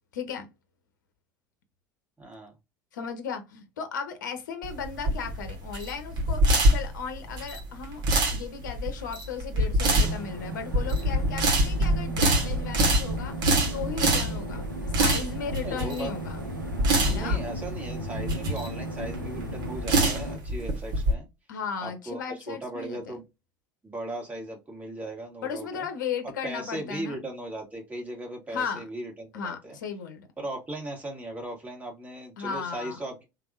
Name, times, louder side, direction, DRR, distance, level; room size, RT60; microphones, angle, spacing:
voice 1, 0.1-0.5 2.9-8.0 8.3-13.3 13.7-14.6 15.0-16.4 17.0-17.4 21.5-23.2 25.4-27.2 28.5-28.8 29.3-30.3 32.4-33.0, left 6 dB, 65° left, 0.8 m, -35 dB
voice 2, 2.2-2.5 14.1-14.4 15.6-16.1 17.1-21.3 21.8-22.2 22.5-23.2 23.8-25.9 26.4-29.8 30.4-33.2, right 1 dB, 15° right, 1.6 m, -37 dB
sound 1, 4.6-21.1, right 1 dB, 40° right, 1.3 m, -25 dB
sound 2, 9.8-20.4, right 1 dB, 85° right, 0.8 m, -36 dB
3.4 x 2.5 x 2.5 m
figure-of-eight pair, 70°, 11 cm